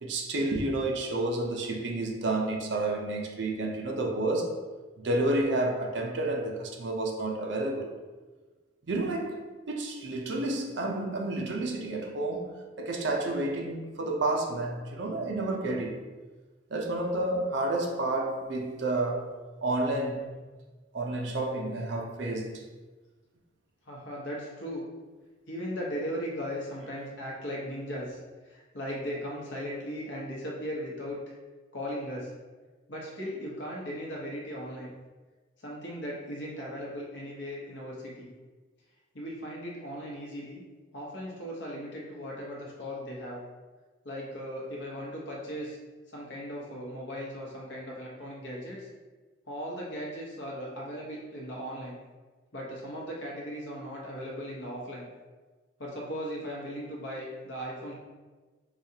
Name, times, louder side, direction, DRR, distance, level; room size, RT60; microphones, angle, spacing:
voice 1, 0.0-4.6 5.0-7.9 8.9-9.4 9.7-12.5 12.8-16.0 16.7-19.3 19.6-20.3 20.9-22.5, right 2 dB, 65° right, 1 dB, 0.5 m, -30 dB
voice 2, 23.9-24.9 25.5-31.3 31.7-32.3 32.9-34.9 35.6-38.3 39.1-40.6 40.9-43.4 44.0-45.8 46.1-48.9 49.5-52.0 52.5-55.1 55.8-57.9, equal, 65° left, -3 dB, 0.9 m, -37 dB
4.9 x 2.3 x 2.7 m, 1.3 s
head